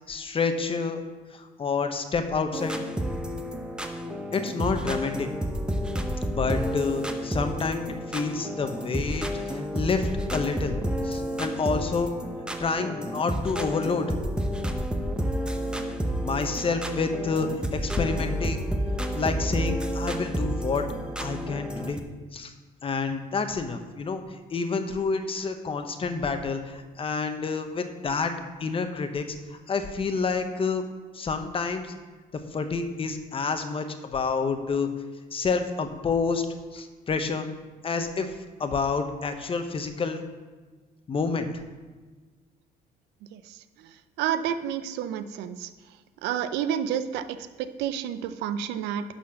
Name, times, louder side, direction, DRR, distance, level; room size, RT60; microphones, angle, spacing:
voice 1, 0.1-1.0 1.3-2.8 4.3-5.3 6.3-7.8 8.1-10.7 11.0-12.1 12.6-14.1 16.2-18.6 19.1-20.8 21.2-22.0 22.3-22.5 22.8-24.2 24.5-28.3 28.6-29.2 29.7-30.8 31.1-31.8 32.3-34.9 35.3-36.5 36.7-37.5 37.8-38.3 38.6-40.2 41.1-41.5, left 4 dB, 30° left, 7 dB, 1.0 m, -28 dB
sound 1, 2.5-22.0, equal, 5° right, 0.7 m, -30 dB
voice 2, 44.2-45.7 46.2-49.0, right 9 dB, 90° right, 12 dB, 0.6 m, -29 dB
11.5 x 4.3 x 6.4 m, 1.3 s
cardioid pair, 110°, 17 cm